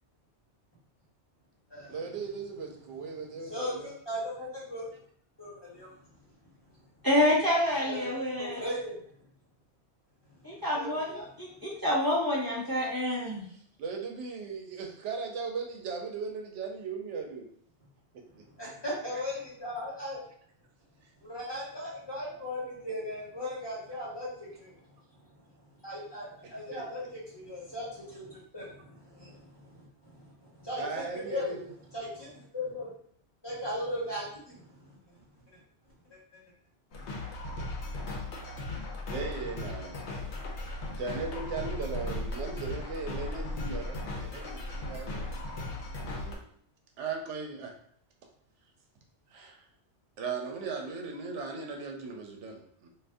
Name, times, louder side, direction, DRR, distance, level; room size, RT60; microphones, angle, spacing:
voice 1, 1.9-3.9 13.8-17.5 26.4-27.1 30.8-31.7 39.1-40.0 41.0-45.3 46.0-46.4 47.0-47.7 49.3-49.6 50.2-52.9, right 4 dB, 80° right, 3 dB, 0.9 m, -38 dB
voice 2, 3.3-4.9 5.4-5.9 7.8-8.1 8.4-9.0 10.7-11.2 18.6-20.2 21.2-24.7 25.8-31.5 31.9-32.9 33.4-35.0 36.1-36.4, left 1 dB, 20° left, -8 dB, 1.4 m, -38 dB
voice 3, 7.0-8.6 10.4-13.4, left 1 dB, 20° right, -6 dB, 1.0 m, -28 dB
sound 1, 36.9-46.3, left 2 dB, 75° left, 1.0 m, -37 dB
2.5 x 2.5 x 3.4 m, 0.63 s
omnidirectional pair, 1.2 m